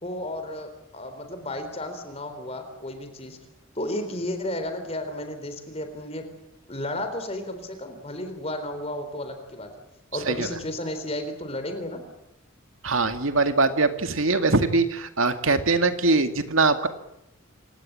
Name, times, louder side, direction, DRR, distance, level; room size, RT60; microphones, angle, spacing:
voice 1, 0.0-3.4 3.7-6.2 6.7-9.7 10.1-12.0, left 1 dB, 30° left, 7 dB, 3.9 m, -33 dB
voice 2, 12.8-16.9, right 3 dB, 80° right, 8 dB, 2.2 m, -22 dB
28.0 x 18.0 x 8.9 m, 0.83 s
head